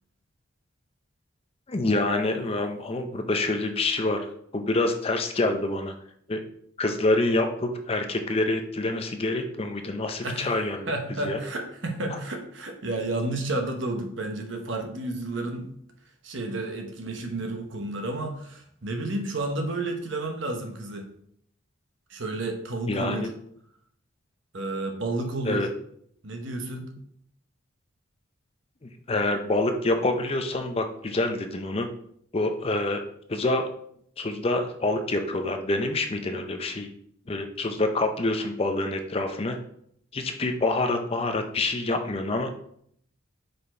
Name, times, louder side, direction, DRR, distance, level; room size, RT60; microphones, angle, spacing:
voice 1, 1.7-6.0 6.3-6.4 6.8-10.9 11.2-11.4 12.1-12.2 22.9-23.3 25.4-25.7 28.8-31.9 32.3-33.0 33.3-33.7 34.2-36.9 37.3-39.6 40.1-42.5, left 2 dB, 30° left, 5 dB, 0.5 m, -26 dB
voice 2, 10.9-15.7 16.2-21.1 22.1-23.3 24.5-25.7 26.2-26.9, right 2 dB, 60° right, 4 dB, 1.0 m, -31 dB
5.2 x 4.2 x 4.3 m, 0.68 s
head